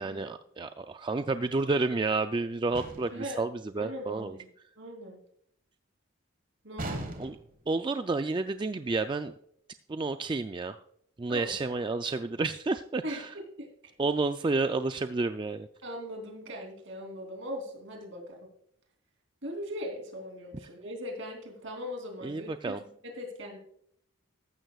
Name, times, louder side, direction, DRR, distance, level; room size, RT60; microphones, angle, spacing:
voice 1, 0.0-4.4 7.2-7.4 7.7-9.3 9.9-10.8 11.2-13.3 14.0-15.7 22.2-22.8, right 3 dB, 25° right, 9 dB, 0.3 m, -30 dB
sound 1, 2.7-3.3 6.8-7.6, right 1 dB, 45° right, 1.4 m, -38 dB
voice 2, 3.7-4.5 4.8-5.2 6.6-7.0 11.3-11.6 13.0-13.2 13.6-13.7 15.8-18.4 19.4-22.7 23.0-23.6, equal, 70° right, 2 dB, 3.2 m, -39 dB
14.5 x 12.5 x 2.4 m, 0.67 s
head